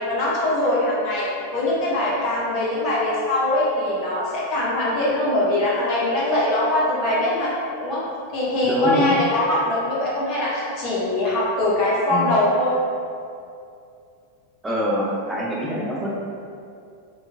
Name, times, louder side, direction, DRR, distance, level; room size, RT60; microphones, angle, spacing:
voice 1, 0.0-7.5 7.8-8.0 8.3-12.8, left 1 dB, 40° left, -6 dB, 0.8 m, -22 dB
voice 2, 8.6-9.2 12.1-12.3 14.6-16.1, equal, 10° right, -5 dB, 0.6 m, -24 dB
2.9 x 2.2 x 2.3 m, 2.4 s
figure-of-eight pair, 90°, 0 cm